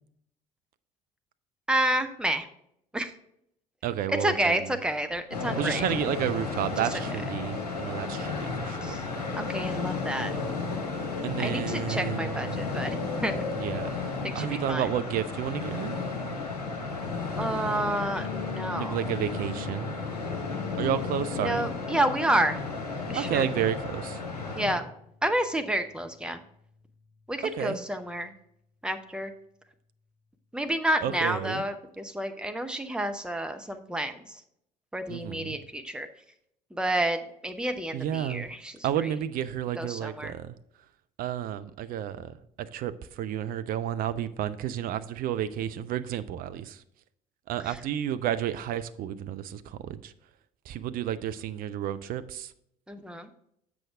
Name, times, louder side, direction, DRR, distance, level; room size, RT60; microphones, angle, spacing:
voice 1, 1.7-2.5 2.9-3.1 4.2-5.8 6.8-7.0 8.8-9.0 9.4-10.3 11.4-13.4 14.2-14.9 17.4-19.0 21.4-22.6 23.1-23.5 24.6-24.8 25.2-26.4 27.3-28.3 28.8-29.3 30.5-34.4 34.9-36.1 36.7-38.7 39.0-39.1 39.8-40.4 47.7-47.8 52.9-53.3, right 1 dB, 5° right, 0.8 m, -29 dB
voice 2, 3.8-4.7 5.6-9.0 11.2-12.6 13.5-16.0 18.7-19.9 20.8-21.7 23.1-24.2 27.6-27.8 31.0-31.6 35.1-35.6 37.9-38.5 38.8-40.5 41.2-46.8 47.5-50.1 50.7-52.5, right 10 dB, 45° right, 0.5 m, -31 dB
sound 1, 5.3-24.8, left 4 dB, 80° left, 1.1 m, -33 dB
sound 2, 18.2-28.1, left 5 dB, 65° left, 0.8 m, -45 dB
7.7 x 6.0 x 3.5 m
figure-of-eight pair, 55°, 20 cm